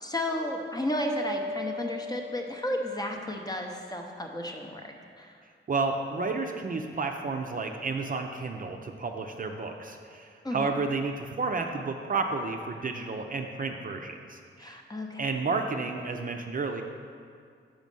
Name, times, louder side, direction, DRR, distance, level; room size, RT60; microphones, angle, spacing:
voice 1, 0.0-5.4 10.4-10.7 14.6-15.2, left 1 dB, 20° left, 2 dB, 0.7 m, -33 dB
Mallet percussion, 0.9-2.9, equal, 85° left, 1.5 m, -36 dB
voice 2, 5.7-14.8 15.2-16.8, right 4 dB, 40° right, 4 dB, 0.5 m, -31 dB
6.2 x 5.1 x 5.3 m, 2.2 s
wide cardioid pair, 115°, 21 cm